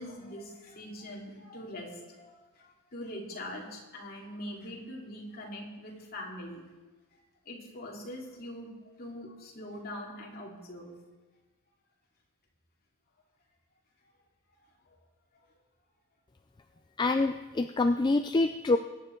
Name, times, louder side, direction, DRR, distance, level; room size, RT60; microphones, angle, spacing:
voice 1, 0.0-6.6 7.5-8.7 9.0-10.9 14.9-15.0, left 1 dB, 45° left, -1 dB, 2.8 m, -43 dB
voice 2, 17.0-18.8, left 2 dB, 20° left, 7 dB, 0.4 m, -26 dB
22.0 x 9.2 x 4.5 m, 1.3 s
head